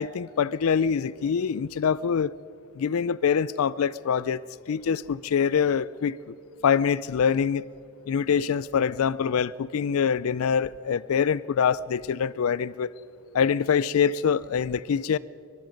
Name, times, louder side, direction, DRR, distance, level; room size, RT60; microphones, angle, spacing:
voice 1, 0.0-2.3 2.8-6.4 6.6-7.6 8.1-12.9 13.3-15.2, left 7 dB, 75° left, 0.4 m, -25 dB
24.0 x 21.5 x 5.2 m
head